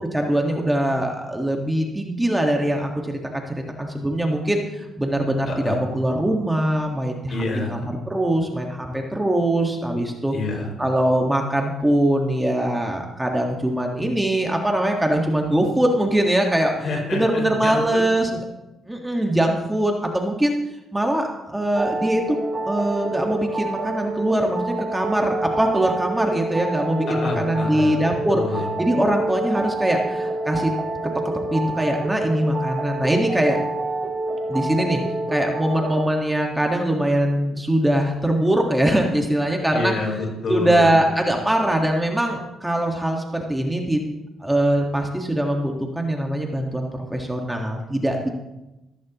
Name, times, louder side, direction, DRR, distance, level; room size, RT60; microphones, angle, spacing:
voice 1, 0.0-2.9 3.3-10.3 10.8-18.3 18.9-20.5 20.9-22.2 22.7-28.4 28.8-30.7 31.5-33.6 34.5-35.0 35.3-39.9 40.5-44.0 44.4-48.3, right 1 dB, 10° right, 2 dB, 1.7 m, -22 dB
voice 2, 5.5-5.9 7.3-7.9 10.3-10.7 16.8-17.8 27.1-28.0 28.3-28.7 39.7-41.0, left 3 dB, 60° left, 0 dB, 5.6 m, -28 dB
sound 1, 21.7-36.0, right 2 dB, 35° right, 1.8 m, -28 dB
15.5 x 14.5 x 3.1 m, 0.98 s
cardioid pair, 90°, 0 cm